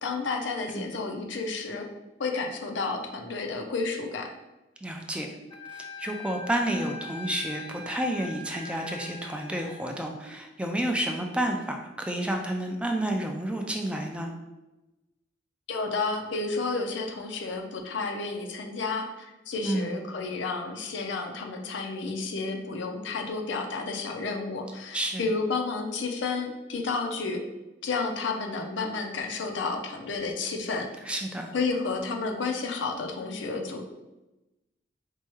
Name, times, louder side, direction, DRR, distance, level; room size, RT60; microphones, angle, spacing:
voice 1, 0.0-1.9 2.2-4.3 15.7-27.4 27.8-30.9 31.5-33.9, left 4 dB, 80° left, 3 dB, 0.6 m, -31 dB
voice 2, 4.8-5.3 5.7-14.3 19.6-20.0 24.9-25.2 31.1-31.5, right 1 dB, 5° right, 2 dB, 0.3 m, -30 dB
Wind instrument woodwind instrument, 5.5-9.8, left 3 dB, 30° left, 0.7 m, -42 dB
4.5 x 2.3 x 3.0 m, 1.0 s
head